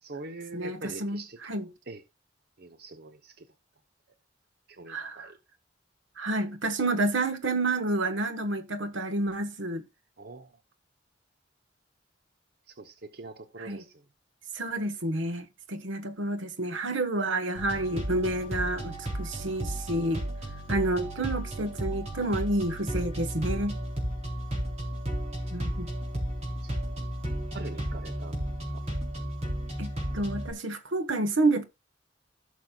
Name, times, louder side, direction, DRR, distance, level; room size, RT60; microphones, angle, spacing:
voice 1, 0.0-1.4 1.9-2.0 2.6-3.5 4.7-5.4 10.2-10.5 12.8-14.0 27.5-28.4 28.7-28.8, right 2 dB, 55° right, 0.8 m, -43 dB
voice 2, 0.5-1.7 4.9-5.3 6.2-9.8 13.6-13.8 14.5-20.2 20.7-23.8 25.5-25.9 29.8-31.6, right 2 dB, 85° right, 1.3 m, -29 dB
sound 1, 17.6-30.5, right 1 dB, 35° right, 4.1 m, -33 dB
16.0 x 6.4 x 2.3 m
head